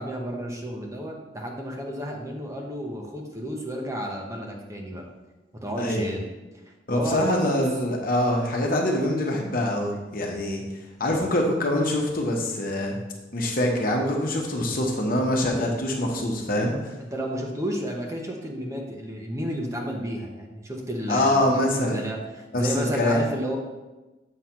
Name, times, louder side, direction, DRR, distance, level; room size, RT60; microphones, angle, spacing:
voice 1, 0.0-5.0 5.6-6.3 6.7-7.6 17.0-23.6, equal, 15° right, 0 dB, 0.9 m, -32 dB
voice 2, 5.8-6.1 6.9-10.6 11.0-13.0 13.3-16.9 21.1-22.0 22.5-23.2, left 1 dB, 55° left, 0 dB, 1.2 m, -24 dB
7.6 x 3.3 x 5.8 m, 1.1 s
head